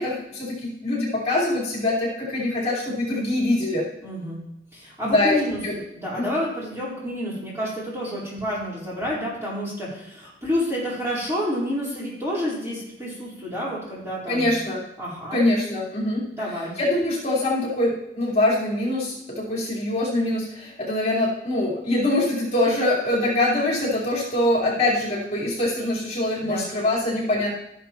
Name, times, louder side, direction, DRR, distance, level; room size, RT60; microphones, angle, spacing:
voice 1, 0.0-3.8 5.0-5.4 5.6-5.7 6.2-6.3 14.3-14.8 15.3-16.2 16.5-27.5, left 1 dB, 35° left, -7 dB, 4.2 m, -24 dB
voice 2, 4.0-4.4 4.7-5.6 5.9-14.5 15.0-15.5 16.3-16.7 26.4-26.6, equal, 15° right, -8 dB, 4.3 m, -29 dB
13.5 x 11.0 x 3.1 m, 0.83 s
head